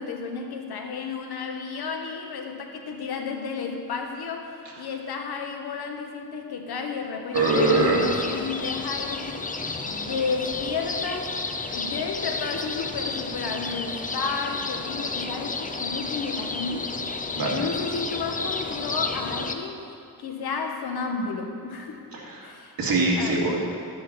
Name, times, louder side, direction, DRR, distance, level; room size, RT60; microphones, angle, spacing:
voice 1, 0.0-11.3 11.7-17.1 17.4-19.8 20.2-22.0 22.4-22.7 23.2-23.4, left 5 dB, 85° left, 3 dB, 1.4 m, -32 dB
sound 1, 7.3-19.6, left 3 dB, 20° left, 0.6 m, -32 dB
voice 2, 7.3-8.0 9.7-9.8 17.3-17.6 22.1-22.5 22.8-23.6, right 2 dB, 65° right, -4 dB, 2.6 m, -22 dB
13.5 x 10.0 x 4.3 m, 2.4 s
wide cardioid pair, 125°, 37 cm